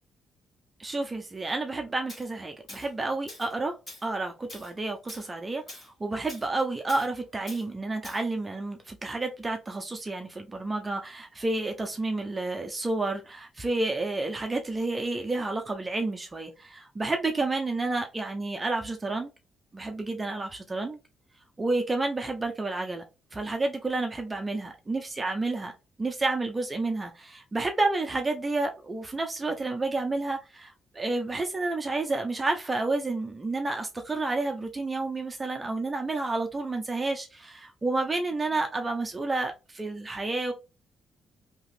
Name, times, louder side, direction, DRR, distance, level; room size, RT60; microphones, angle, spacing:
voice 1, 0.8-3.8 4.0-19.3 19.7-21.0 21.6-23.0 23.3-25.7 26.0-40.5, right 2 dB, 15° right, 0.4 m, -30 dB
Tools, 2.1-2.3 2.7-2.9 3.3-3.5 3.9-4.1 4.5-4.7 5.1-5.3 5.7-5.9 6.3-6.5 6.9-7.1 7.5-7.6 8.0-8.2, left 1 dB, 25° left, 1.2 m, -45 dB
3.2 x 2.8 x 2.5 m
cardioid pair, 155°, 0 cm